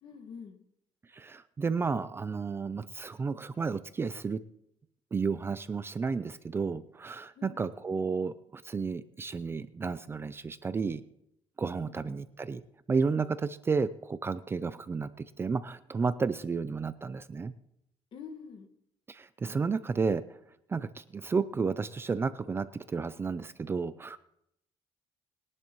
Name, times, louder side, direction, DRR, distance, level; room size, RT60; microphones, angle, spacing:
voice 1, 0.0-0.6 7.4-7.6 11.8-12.2 18.1-18.7, left 6 dB, 50° left, 7 dB, 1.7 m, -46 dB
voice 2, 1.1-4.4 5.1-11.0 11.6-12.6 12.9-17.5 19.1-20.2 20.7-24.2, right 5 dB, 20° right, 13 dB, 0.4 m, -32 dB
21.0 x 11.0 x 3.1 m, 0.77 s
cardioid pair, 140°, 11 cm